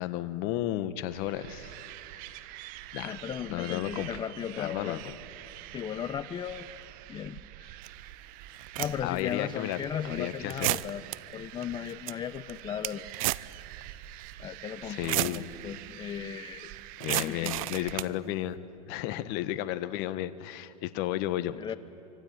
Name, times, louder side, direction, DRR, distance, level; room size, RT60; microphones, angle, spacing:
voice 1, 0.0-1.8 2.1-2.2 2.9-3.2 3.5-4.2 4.6-5.2 9.0-9.8 10.0-10.8 14.8-15.5 17.0-21.6, left 13 dB, 50° left, 12 dB, 1.4 m, -33 dB
sound 1, 1.1-18.0, right 14 dB, 45° right, 1.2 m, -46 dB
voice 2, 3.0-5.0 5.7-6.7 7.1-7.4 8.8-11.0 11.3-13.1 14.4-16.7 17.1-17.6 18.1-18.2 19.1-19.2 21.6-21.7, left 9 dB, 25° left, 13 dB, 0.8 m, -36 dB
sound 2, 7.8-7.9 8.6-9.2 9.7-9.8 10.5-11.2 11.6-11.7 11.9-12.1 12.5-13.5 13.8-13.9 14.9-15.4 17.0-18.1, right 18 dB, 60° right, 0.7 m, -31 dB
25.5 x 24.5 x 9.5 m, 2.6 s
hypercardioid pair, 115°, 20 cm